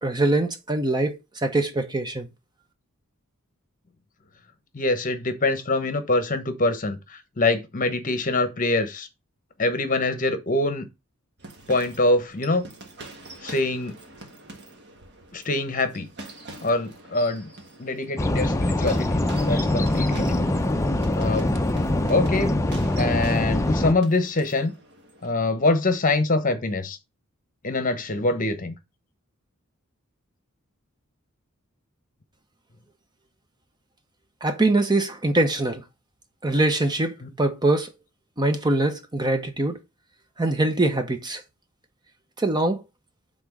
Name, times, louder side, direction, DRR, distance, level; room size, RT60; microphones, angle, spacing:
voice 1, 0.0-2.3 34.4-35.8 36.4-37.9 38.4-39.8 40.4-41.4 42.4-42.8, right 2 dB, 20° right, 0.7 m, -23 dB
voice 2, 4.7-9.1 9.6-10.9 11.7-12.6 13.4-13.9 15.3-16.1 16.6-17.5 17.8-20.5 21.1-21.5 22.1-22.5 23.0-24.7 25.2-27.0 27.6-28.7 37.2-37.3, left 2 dB, 40° left, 1.0 m, -24 dB
sound 1, 11.4-25.3, right 2 dB, 50° right, 1.4 m, -44 dB
sound 2, 18.2-23.9, left 1 dB, 15° left, 0.5 m, -23 dB
6.0 x 3.8 x 6.0 m
head